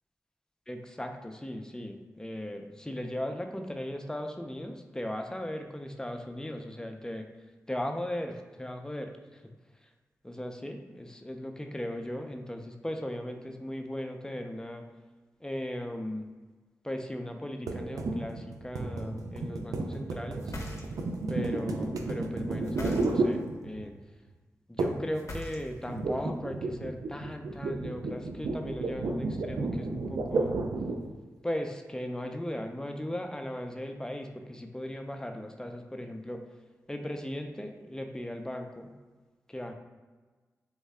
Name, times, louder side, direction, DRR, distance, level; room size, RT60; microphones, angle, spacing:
voice 1, 0.7-7.3 7.7-9.4 9.8-9.9 10.2-14.8 15.4-16.3 16.8-20.5 21.3-23.9 24.7-30.6 31.4-36.4 36.9-38.9 39.5-39.7, left 1 dB, 10° left, 4 dB, 0.5 m, -37 dB
sound 1, 17.7-24.0 24.8-25.2 25.4-31.1, right 2 dB, 75° right, 0.3 m, -32 dB
sound 2, 20.4-21.2 22.6-23.5 25.1-26.0, left 1 dB, 55° left, 0.6 m, -41 dB
3.5 x 2.2 x 3.3 m, 1.3 s
cardioid pair, 45°, 6 cm